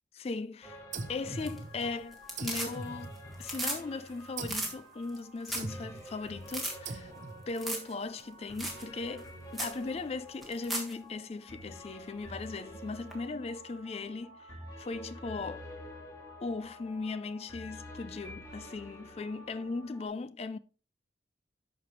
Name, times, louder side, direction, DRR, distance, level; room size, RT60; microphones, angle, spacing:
voice 1, 0.1-0.8 1.1-7.1 7.5-15.7 16.4-20.6, left 3 dB, 35° left, 0.3 m, -38 dB
sound 1, 0.6-20.1, equal, 15° left, 1.7 m, -49 dB
sound 2, 0.9-2.0 2.4-3.7 4.4-4.8 5.6-6.1 6.9-7.5, right 3 dB, 40° right, 0.7 m, -42 dB
sound 3, 1.3-1.8 2.1-3.0 3.3-3.8 4.1-4.2 4.4-4.7 5.1-5.2 5.4-5.7 6.0-6.1 6.5-6.7 7.6-7.9 8.2-8.3 8.6-8.8 9.2-9.3 9.5-9.8 10.4-10.9 13.1-13.2, right 1 dB, ahead, 1.6 m, -35 dB
12.5 x 4.9 x 3.1 m
head